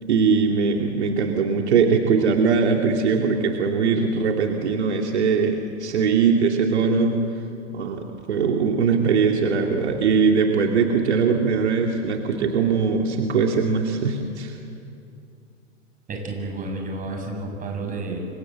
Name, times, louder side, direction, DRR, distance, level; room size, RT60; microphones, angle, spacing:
voice 1, 0.0-7.2 7.7-14.6, right 5 dB, 65° right, 2 dB, 2.6 m, -21 dB
voice 2, 16.1-18.2, right 2 dB, 20° right, 2 dB, 7.5 m, -31 dB
29.0 x 25.0 x 7.9 m, 2.6 s
figure-of-eight pair, 105°, 36 cm